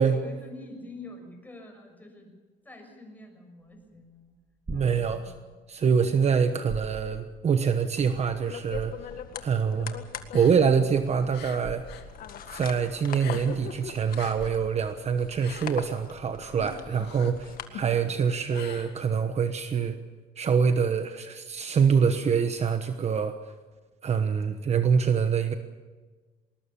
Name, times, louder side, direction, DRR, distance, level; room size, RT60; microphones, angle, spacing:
voice 1, 0.0-2.3 2.6-4.4 4.7-5.6 17.7-18.1, left 2 dB, 10° left, 3 dB, 6.5 m, -47 dB
sound 1, 3.7-17.2, right 1 dB, 25° right, 3.6 m, -45 dB
voice 2, 4.7-5.2 5.7-8.9 9.4-10.0 10.3-11.8 12.5-20.0 20.4-23.3 24.0-25.5, right 6 dB, 40° right, 8 dB, 1.2 m, -25 dB
sound 2, 8.0-17.7, left 8 dB, 60° left, 1.8 m, -42 dB
sound 3, 10.2-12.1 12.4-13.7 14.0-19.5, left 9 dB, 75° left, 2.4 m, -45 dB
20.0 x 20.0 x 7.1 m, 1.3 s
cardioid pair, 110°, 17 cm